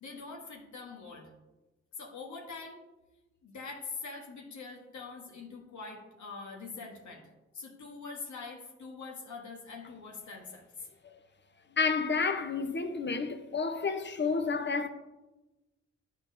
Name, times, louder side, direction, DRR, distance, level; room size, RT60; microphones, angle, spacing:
voice 1, 0.0-1.3 2.0-2.8 3.4-7.3 7.5-10.7, left 4 dB, 70° left, 1.3 m, -44 dB
voice 2, 11.8-14.9, left 4 dB, 35° left, 0.9 m, -30 dB
11.0 x 4.3 x 2.7 m
supercardioid pair, 45°, 30 cm